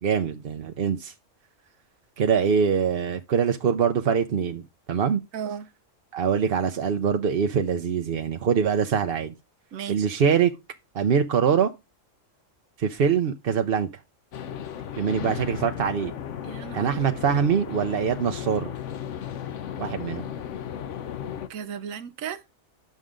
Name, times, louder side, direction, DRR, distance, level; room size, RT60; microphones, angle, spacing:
voice 1, 0.0-1.1 2.2-4.6 4.9-5.2 6.1-9.3 9.9-10.5 10.9-11.7 12.8-13.9 15.0-16.1 16.7-18.7 19.8-20.3, right 7 dB, 55° right, 0.8 m, -23 dB
voice 2, 5.3-5.7 9.7-10.1 16.4-16.9 21.5-22.4, right 8 dB, 85° right, 1.2 m, -35 dB
sound 1, 14.3-21.5, left 9 dB, 70° left, 1.1 m, -35 dB
10.5 x 6.5 x 3.7 m
omnidirectional pair, 1.4 m